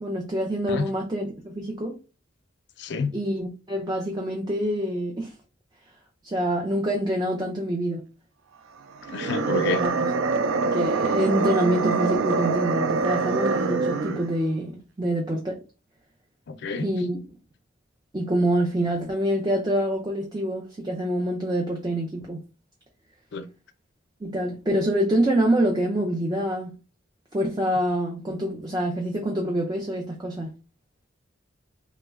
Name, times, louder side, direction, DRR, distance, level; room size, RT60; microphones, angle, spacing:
voice 1, 0.0-2.0 3.1-5.3 6.2-8.0 9.5-10.1 10.7-15.6 16.8-17.2 18.1-22.4 24.2-26.7 27.3-30.5, right 1 dB, 20° right, 0.4 m, -26 dB
voice 2, 2.8-3.1 9.1-9.8 16.5-16.9 23.3-23.5, left 4 dB, 60° left, 0.4 m, -28 dB
sound 1, 9.0-14.4, right 4 dB, 80° right, 0.4 m, -24 dB
3.0 x 2.1 x 3.4 m
head